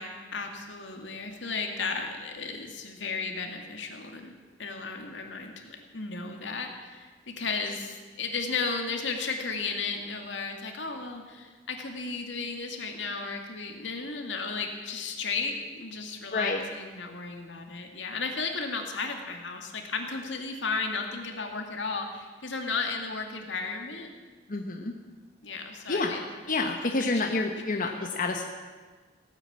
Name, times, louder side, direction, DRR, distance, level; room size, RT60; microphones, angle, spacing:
voice 1, 0.0-4.3 4.6-24.1 25.4-26.2 27.1-27.2, left 4 dB, 80° left, 3 dB, 2.2 m, -34 dB
voice 2, 16.3-16.6 24.5-24.9 25.9-26.1 26.5-28.4, left 3 dB, 50° left, 2 dB, 1.2 m, -28 dB
17.5 x 9.0 x 8.7 m, 1.4 s
head